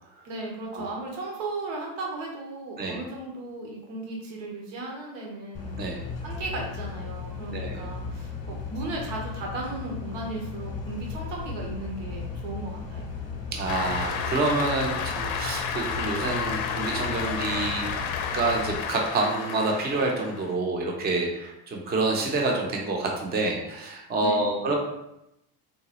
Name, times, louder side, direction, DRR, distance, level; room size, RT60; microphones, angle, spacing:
voice 1, 0.2-5.8 6.2-13.1 24.2-24.7, right 2 dB, 70° right, -1 dB, 1.0 m, -36 dB
sound 1, 5.5-18.8, left 5 dB, 35° left, 0.8 m, -36 dB
voice 2, 13.5-17.9 18.3-24.8, right 3 dB, 20° right, 0 dB, 0.5 m, -27 dB
Cheering / Applause, 13.7-20.5, left 6 dB, 55° left, 0.5 m, -31 dB
3.9 x 2.3 x 2.9 m, 0.86 s
supercardioid pair, 105°, 46 cm